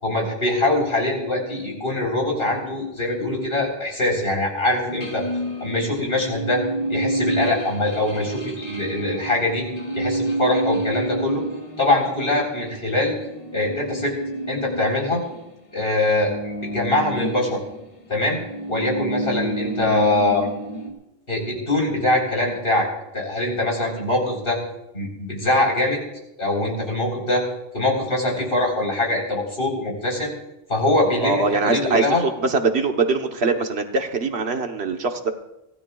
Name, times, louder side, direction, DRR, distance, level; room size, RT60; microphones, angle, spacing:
voice 1, 0.0-5.2 5.6-6.6 6.9-9.6 9.9-11.4 11.8-13.1 13.5-14.1 14.5-15.2 15.7-17.6 18.1-18.4 18.7-20.5 21.3-22.9 23.1-24.6 24.9-26.0 26.4-27.4 27.7-30.3 30.7-32.2, left 2 dB, 60° left, -1 dB, 4.4 m, -23 dB
sound 1, 4.9-15.5 15.8-20.9, right 1 dB, 30° left, 2.3 m, -29 dB
voice 2, 31.2-35.3, right 4 dB, 75° right, 5 dB, 1.4 m, -22 dB
24.0 x 16.5 x 2.4 m, 0.89 s
omnidirectional pair, 1.1 m